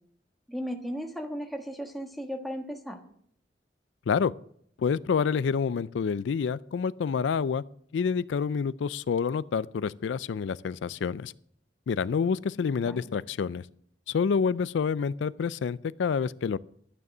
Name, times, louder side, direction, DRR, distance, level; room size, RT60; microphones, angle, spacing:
voice 1, 0.5-3.0 12.8-13.1, equal, ahead, 3 dB, 1.4 m, -35 dB
voice 2, 4.8-7.6 7.9-11.3 11.9-13.6 14.1-16.6, left 6 dB, 85° left, 18 dB, 0.4 m, -28 dB
12.0 x 9.4 x 6.1 m, 0.66 s
head